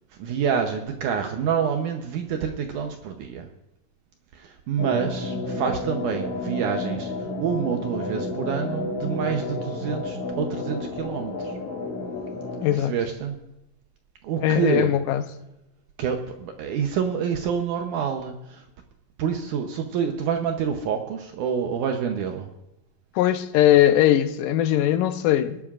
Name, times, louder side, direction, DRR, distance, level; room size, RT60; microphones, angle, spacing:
voice 1, 0.2-3.5 4.3-11.5 12.8-13.4 14.2-14.9 16.0-18.6 19.2-22.5, right 7 dB, 70° right, 2.1 m, -27 dB
sound 1, 4.8-12.8, left 2 dB, 60° left, 3.0 m, -31 dB
voice 2, 12.6-13.0 14.4-15.2 23.2-25.6, left 12 dB, 80° left, 2.2 m, -20 dB
24.0 x 12.0 x 2.4 m
omnidirectional pair, 4.1 m